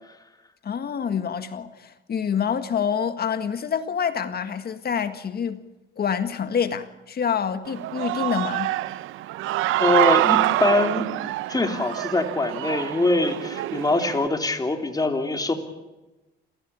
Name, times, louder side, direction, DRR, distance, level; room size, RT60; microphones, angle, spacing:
voice 1, 0.6-5.6 6.0-8.7, left 7 dB, 50° left, 1.8 m, -27 dB
Human voice / Cheering, 7.7-14.3, right 15 dB, 90° right, 0.7 m, -25 dB
voice 2, 9.8-11.0 11.5-15.5, left 2 dB, 20° left, 3.4 m, -23 dB
27.5 x 17.0 x 8.7 m
cardioid pair, 90°, 20 cm